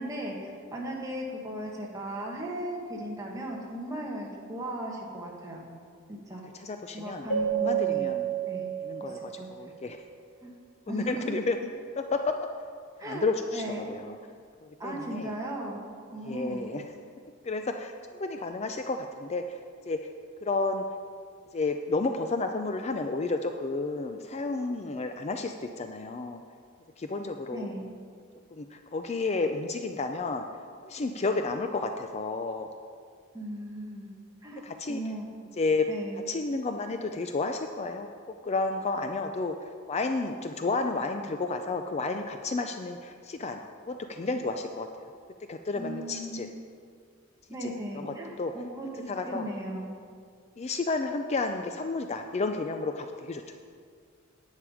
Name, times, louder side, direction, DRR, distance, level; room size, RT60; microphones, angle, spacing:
voice 1, 0.0-5.6 6.1-6.4 6.9-8.1 8.5-8.7 9.0-9.7 10.4-10.5 10.9-11.3 13.0-13.3 13.5-13.9 14.8-15.8 16.1-16.7 27.5-27.9 33.3-34.1 34.4-35.3 35.9-36.3 45.7-46.5 47.5-49.9, right 1 dB, 15° right, -2 dB, 1.5 m, -37 dB
voice 2, 6.5-7.3 7.5-8.3 8.8-10.0 10.9-11.6 12.0-12.3 13.1-14.2 14.6-15.3 16.2-16.8 17.4-19.6 19.9-20.0 20.4-20.8 21.5-26.4 27.0-27.8 28.5-30.5 30.8-32.7 34.6-35.0 35.6-35.9 36.3-39.6 39.9-45.1 45.5-46.5 47.6-48.5 49.1-49.5 50.6-53.6, left 3 dB, 30° left, 6 dB, 0.4 m, -31 dB
Keyboard (musical), 7.3-9.7, right 10 dB, 80° left, 2.3 m, -30 dB
10.0 x 8.4 x 4.9 m, 2.1 s
head